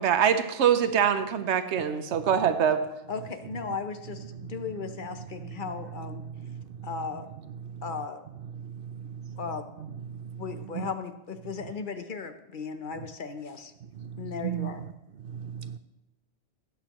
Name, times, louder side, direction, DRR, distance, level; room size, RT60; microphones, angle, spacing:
voice 1, 0.0-2.8, right 8 dB, 80° right, 9 dB, 1.1 m, -24 dB
voice 2, 3.1-6.2 6.8-7.3 7.8-8.2 9.4-9.7 10.4-13.7 14.2-14.8, left 5 dB, 50° left, 8 dB, 0.9 m, -36 dB
voice 3, 8.6-9.4 10.1-10.4 10.7-10.9 14.0-14.7 15.3-15.8, right 10 dB, 60° right, 11 dB, 0.7 m, -36 dB
18.5 x 8.0 x 3.0 m, 0.91 s
omnidirectional pair, 1.2 m